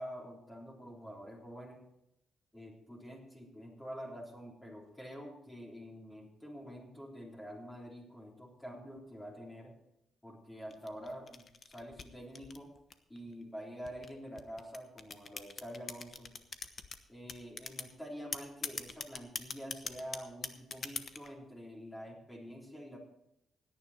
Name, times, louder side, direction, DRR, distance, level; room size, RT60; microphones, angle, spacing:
voice 1, 0.0-1.9 2.5-9.7 10.2-12.7 13.1-16.3 17.1-23.0, equal, 10° left, -2 dB, 3.6 m, -47 dB
sound 1, 10.7-13.2 13.9-17.0 17.3-17.9 18.3-21.3, left 5 dB, 45° left, 1.1 m, -41 dB
17.0 x 10.0 x 4.3 m, 0.85 s
cardioid pair, 90°, 0 cm